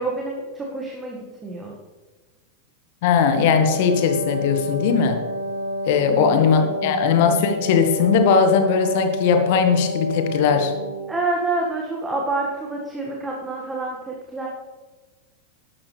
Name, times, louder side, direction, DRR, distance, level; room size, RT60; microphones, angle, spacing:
voice 1, 0.0-1.7 6.0-7.0 11.1-14.5, right 2 dB, 10° right, -2 dB, 1.8 m, -28 dB
voice 2, 3.0-5.2 5.8-10.7, left 6 dB, 50° left, 7 dB, 1.5 m, -19 dB
Wind instrument woodwind instrument, 3.2-11.2, equal, 65° right, 0.9 m, -29 dB
12.5 x 12.0 x 3.4 m, 1.3 s
figure-of-eight pair, 90°, 0 cm